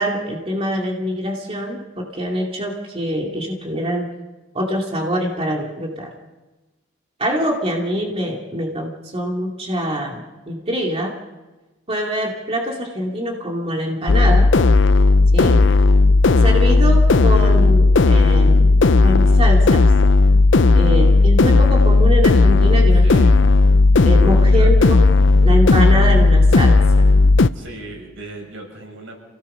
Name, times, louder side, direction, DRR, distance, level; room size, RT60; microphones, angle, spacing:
voice 1, 0.0-4.1 4.5-6.1 7.2-11.1 11.9-14.5 15.3-15.6 16.4-19.9 20.7-23.0 24.0-25.0 25.4-27.1, equal, 30° right, 0 dB, 2.6 m, -24 dB
sound 1, 14.1-27.5, left 3 dB, 65° left, 0.6 m, -13 dB
voice 2, 15.5-15.9 23.0-23.4 24.6-25.0 27.5-29.2, right 1 dB, 90° right, 1 dB, 7.6 m, -37 dB
28.5 x 18.0 x 5.6 m, 1.1 s
head